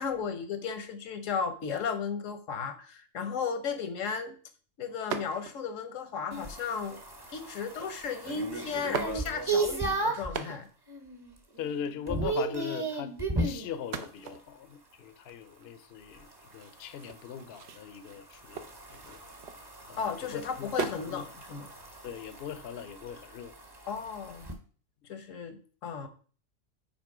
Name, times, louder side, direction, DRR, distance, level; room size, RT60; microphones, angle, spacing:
voice 1, 0.0-4.4 4.8-7.0 7.3-10.7 20.0-21.7 23.9-24.5 25.1-26.1, left 6 dB, 85° left, 1.2 m, -35 dB
sound 1, 5.1-5.8 6.5-7.1 8.1-8.2 8.8-9.7 10.1-10.9 11.2-11.3 11.4-12.5 13.7-19.9 20.3-21.2 21.6-23.4, right 7 dB, 65° right, 0.9 m, -40 dB
sound 2, 6.3-10.4 10.9-11.3 11.6-13.7 16.1-24.5, right 2 dB, 20° right, 0.9 m, -35 dB
voice 2, 11.6-18.7 18.9-19.2 19.9-21.2 22.0-23.5, left 8 dB, 60° left, 0.7 m, -40 dB
6.0 x 4.3 x 4.8 m
omnidirectional pair, 1.3 m